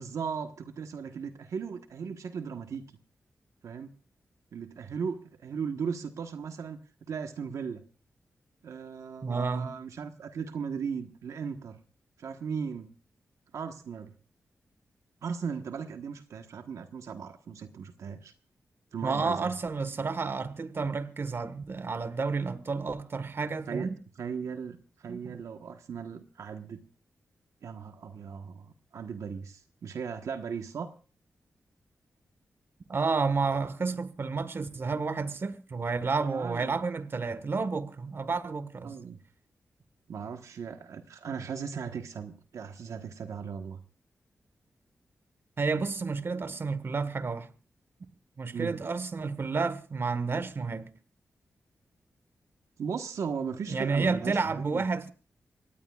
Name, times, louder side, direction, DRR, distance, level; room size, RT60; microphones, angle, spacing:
voice 1, 0.0-2.8 3.6-3.9 4.5-6.8 7.1-7.8 8.6-11.8 12.2-12.9 13.5-14.1 15.2-18.3 18.9-19.5 23.7-23.9 24.2-26.8 27.6-30.9 36.2-36.8 38.8-39.2 40.1-43.8 48.5-48.8 52.8-55.1, right 6 dB, 85° right, 1.2 m, -37 dB
voice 2, 9.2-9.7 19.0-24.0 25.1-25.2 32.9-39.0 45.6-47.5 48.4-50.9 53.7-55.1, right 4 dB, 50° right, 1.5 m, -30 dB
25.5 x 18.0 x 2.4 m
cardioid pair, 75°, 5 cm